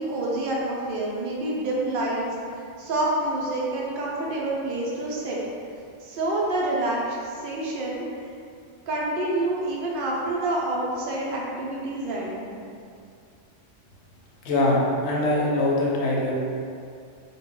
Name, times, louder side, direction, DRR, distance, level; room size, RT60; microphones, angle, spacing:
voice 1, 0.0-2.3 2.8-5.4 6.0-8.3 8.9-12.5, right 2 dB, 60° right, -4 dB, 0.6 m, -27 dB
voice 2, 14.4-16.3, left 1 dB, 75° left, -3 dB, 0.8 m, -22 dB
2.2 x 2.1 x 3.6 m, 2.4 s
omnidirectional pair, 1.2 m